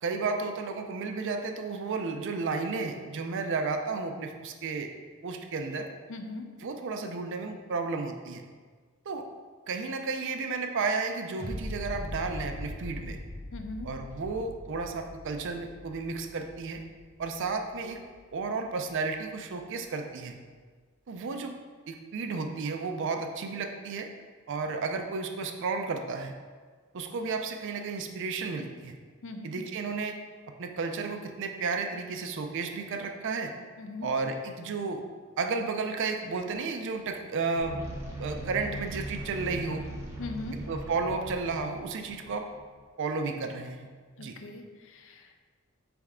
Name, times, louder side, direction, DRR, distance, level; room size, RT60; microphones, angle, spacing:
voice 1, 0.0-4.9 5.2-5.9 6.6-8.4 9.1-9.2 9.7-13.2 13.8-16.8 17.2-18.0 18.3-20.4 21.1-21.5 21.9-24.1 24.5-26.3 26.9-29.0 29.4-30.2 30.6-33.5 34.0-35.0 35.4-37.8 38.2-39.8 40.7-42.5 43.0-43.9 44.2-44.3, right 4 dB, 60° right, 5 dB, 0.4 m, -32 dB
voice 2, 6.1-6.5 13.5-13.9 29.2-29.6 33.8-34.1 40.2-40.6 44.2-45.3, left 2 dB, 60° left, 5 dB, 0.5 m, -40 dB
sound 1, 11.4-18.4 18.9-19.0, left 1 dB, 45° left, 0.9 m, -41 dB
sound 2, 37.5-42.8, right 1 dB, 15° right, 0.8 m, -40 dB
4.2 x 3.5 x 3.6 m, 1.5 s
head